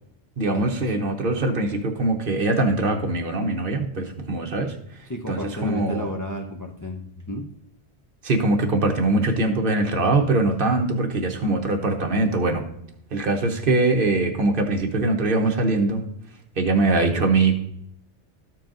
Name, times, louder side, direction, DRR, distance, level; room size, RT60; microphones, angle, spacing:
voice 1, 0.4-4.8 5.3-6.1 8.2-12.6 13.1-16.0 16.6-17.6, right 2 dB, 55° right, 3 dB, 1.2 m, -22 dB
voice 2, 5.1-7.5, left 1 dB, 20° left, 0 dB, 0.8 m, -32 dB
13.5 x 4.5 x 3.8 m, 0.75 s
omnidirectional pair, 1.1 m